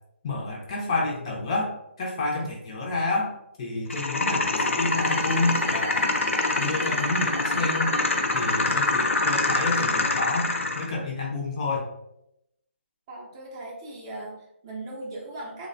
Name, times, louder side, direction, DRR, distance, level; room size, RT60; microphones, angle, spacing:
voice 1, 0.2-6.0 6.6-7.9 8.3-10.5 10.7-11.8, left 2 dB, 30° left, -1 dB, 0.5 m, -29 dB
sound 1, 3.9-10.9, left 3 dB, 85° left, 0.4 m, -25 dB
Bowed string instrument, 4.6-10.1, right 5 dB, 85° right, 0.4 m, -43 dB
voice 2, 13.1-15.7, right 2 dB, 25° right, -3 dB, 0.5 m, -38 dB
3.1 x 2.1 x 2.5 m, 0.84 s
hypercardioid pair, 160°, 7 cm